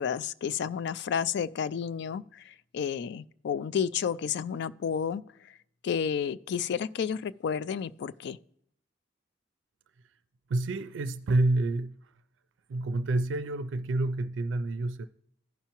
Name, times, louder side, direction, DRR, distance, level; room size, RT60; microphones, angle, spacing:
voice 1, 0.0-5.2 5.8-8.4, left 7 dB, 65° left, 0.3 m, -31 dB
voice 2, 10.5-12.1 12.7-15.1, right 2 dB, 75° right, 0.4 m, -28 dB
15.0 x 5.7 x 2.9 m
head